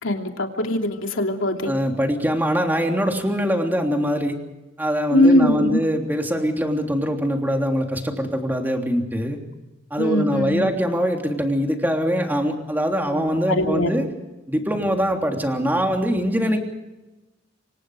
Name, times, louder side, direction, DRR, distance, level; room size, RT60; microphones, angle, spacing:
voice 1, 0.0-1.7 5.1-5.8 10.0-10.7 13.1-13.9, left 1 dB, 85° left, 3 dB, 3.0 m, -21 dB
voice 2, 1.6-4.3 4.8-9.4 9.9-14.1 14.5-16.6, equal, 10° right, 2 dB, 3.2 m, -23 dB
28.0 x 25.0 x 5.0 m, 1.0 s
head